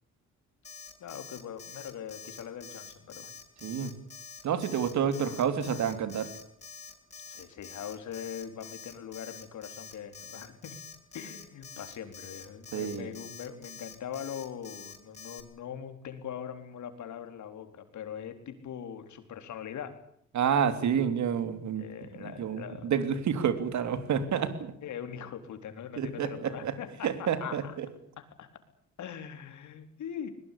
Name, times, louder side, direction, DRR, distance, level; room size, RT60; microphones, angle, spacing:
Alarm, 0.6-15.4, left 6 dB, 25° left, 7.2 m, -46 dB
voice 1, 1.0-3.3 4.9-5.0 7.3-10.8 11.1-20.0 21.8-22.9 24.8-27.8 28.2-28.5 29.0-30.3, left 8 dB, 70° left, 8 dB, 4.1 m, -41 dB
voice 2, 3.6-3.9 4.4-6.3 12.7-13.1 20.3-21.9 22.2-24.7 26.0-26.7 27.0-27.9, right 7 dB, 70° right, 11 dB, 3.2 m, -29 dB
21.5 x 21.0 x 8.6 m, 0.67 s
cardioid pair, 90°, 30 cm